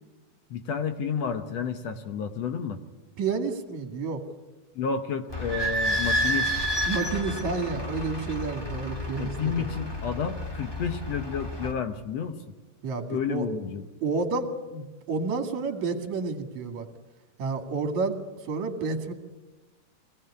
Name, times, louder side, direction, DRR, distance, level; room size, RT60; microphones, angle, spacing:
voice 1, 0.5-2.8 4.8-6.5 9.2-12.4 13.1-13.8, left 6 dB, 60° left, 8 dB, 2.0 m, -31 dB
voice 2, 3.2-4.2 6.9-9.7 12.8-13.5 14.0-16.9 17.4-18.2 18.4-19.1, right 4 dB, 60° right, 6 dB, 3.3 m, -30 dB
Idling / Squeak, 5.3-11.7, equal, 10° left, 1.6 m, -30 dB
24.5 x 18.5 x 9.8 m, 1.2 s
omnidirectional pair, 3.7 m